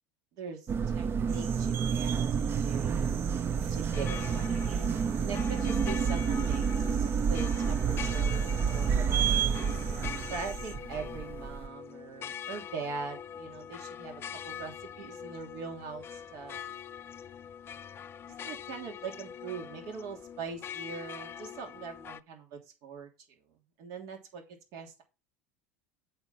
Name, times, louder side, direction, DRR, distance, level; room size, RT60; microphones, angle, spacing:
voice 1, 0.4-3.1 3.7-4.6 5.2-9.6 10.3-16.6 18.4-23.1 23.8-24.4 24.7-25.0, right 5 dB, 60° right, 3 dB, 3.1 m, -42 dB
sound 1, 0.7-11.7, right 7 dB, 35° right, 0.7 m, -29 dB
sound 2, 1.3-10.8, right 7 dB, 75° right, 1.7 m, -47 dB
sound 3, 3.2-22.2, left 9 dB, 35° left, 0.5 m, -43 dB
8.4 x 4.5 x 5.6 m, 0.29 s
hypercardioid pair, 90°, 7 cm